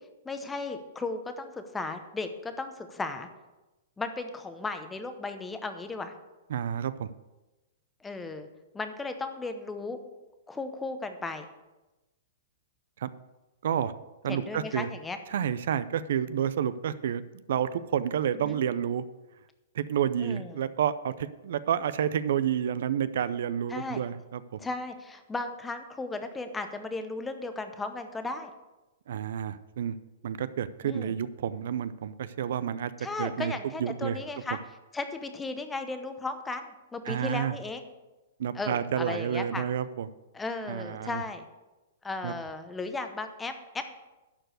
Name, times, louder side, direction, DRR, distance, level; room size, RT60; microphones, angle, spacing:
voice 1, 0.2-3.3 4.0-6.1 8.0-8.5 8.7-10.0 10.5-11.5 14.3-15.2 18.4-18.6 20.2-20.6 23.7-24.0 24.6-28.5 30.8-31.1 33.0-34.6 34.9-37.9 38.5-39.7 40.3-41.4 42.0-43.9, left 3 dB, 10° left, 8 dB, 0.8 m, -35 dB
voice 2, 6.5-7.1 13.0-13.1 13.6-13.9 14.2-14.9 15.3-17.2 17.5-19.0 19.7-24.4 29.1-30.0 30.2-32.9 33.2-33.5 33.8-34.2 37.1-37.5 38.4-40.1 40.7-41.2 42.2-42.3, right 9 dB, 65° right, 15 dB, 0.5 m, -29 dB
11.5 x 4.6 x 7.7 m, 1.1 s
hypercardioid pair, 155°, 0 cm